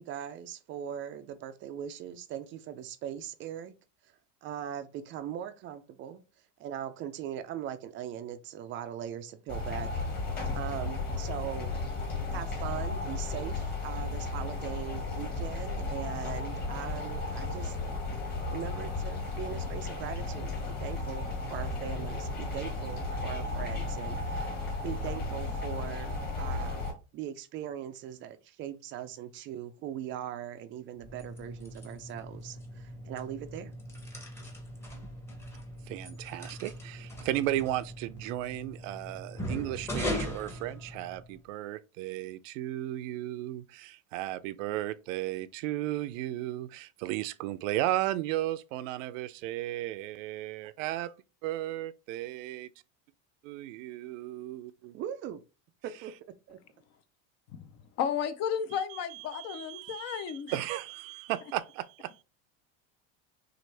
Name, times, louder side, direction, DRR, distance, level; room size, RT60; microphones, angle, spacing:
voice 1, 0.0-3.7 4.0-4.1 4.4-6.2 6.6-9.9 10.5-11.8 12.3-17.8 18.5-24.6 24.8-33.7 54.9-55.4 55.8-56.1 56.5-56.6, right 10 dB, 35° right, 0.4 m, -40 dB
sound 1, 9.5-26.9, left 3 dB, 25° left, 1.6 m, -34 dB
sound 2, 30.9-41.4, equal, 5° left, 0.9 m, -40 dB
voice 2, 35.9-51.1 51.4-52.7 53.5-54.9 58.7-62.2, right 15 dB, 80° right, 0.6 m, -35 dB
voice 3, 58.0-60.6, left 8 dB, 45° left, 0.6 m, -33 dB
6.3 x 2.5 x 3.2 m
cardioid pair, 150°, 37 cm